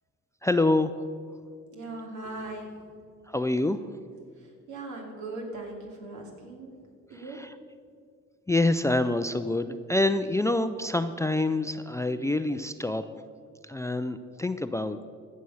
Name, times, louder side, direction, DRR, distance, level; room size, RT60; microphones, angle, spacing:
voice 1, 0.4-1.0 3.3-3.8 7.3-7.5 8.5-13.1 13.6-15.0, left 2 dB, 10° left, 11 dB, 0.4 m, -26 dB
voice 2, 1.7-2.9 4.4-6.7 7.1-7.4, right 2 dB, 75° right, 0 dB, 2.7 m, -39 dB
15.5 x 6.5 x 5.6 m, 2.1 s
cardioid pair, 90°, 30 cm